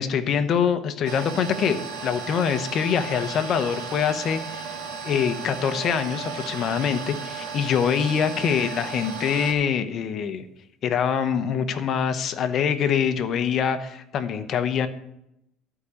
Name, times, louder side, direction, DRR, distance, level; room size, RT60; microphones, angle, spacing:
voice 1, 0.0-4.7 5.0-10.5 10.8-14.9, left 7 dB, 40° left, 9 dB, 0.9 m, -24 dB
sound 1, 1.1-9.5, right 5 dB, 90° right, 2.2 m, -35 dB
12.5 x 5.0 x 8.3 m, 0.83 s
cardioid pair, 150°, 0 cm